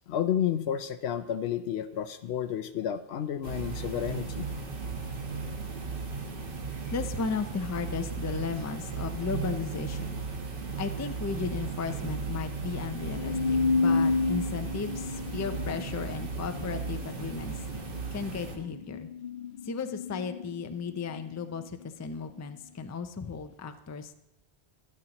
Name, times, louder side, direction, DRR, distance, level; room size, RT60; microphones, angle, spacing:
voice 1, 0.1-4.5, left 9 dB, 90° left, 11 dB, 0.9 m, -31 dB
sound 1, 3.4-18.6, right 4 dB, 60° right, 1.3 m, -36 dB
voice 2, 6.9-10.1 10.8-17.6 18.1-19.1 19.6-24.1, left 5 dB, 30° left, 9 dB, 0.3 m, -35 dB
sound 2, 13.0-21.8, left 4 dB, 60° left, 0.7 m, -31 dB
11.5 x 11.0 x 2.9 m, 0.87 s
omnidirectional pair, 1.0 m